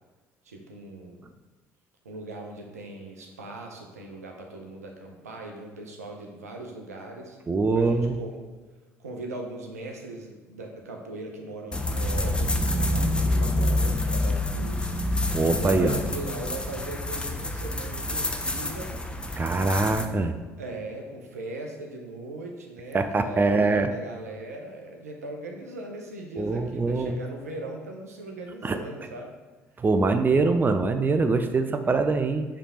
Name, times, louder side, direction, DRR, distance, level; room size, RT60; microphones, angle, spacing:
voice 1, 0.4-1.3 2.0-7.4 7.7-8.4 9.0-15.0 15.6-18.9 20.6-29.3 29.7-29.8, right 2 dB, 85° right, 1 dB, 0.8 m, -39 dB
voice 2, 7.5-8.2 15.3-16.0 19.4-20.3 22.9-23.9 26.4-27.1 28.6-28.8 29.8-32.5, right 3 dB, 25° right, 8 dB, 0.5 m, -23 dB
sound 1, 11.7-20.1, left 1 dB, 10° left, 0.7 m, -27 dB
7.3 x 3.4 x 4.3 m, 1.2 s
figure-of-eight pair, 55°, 8 cm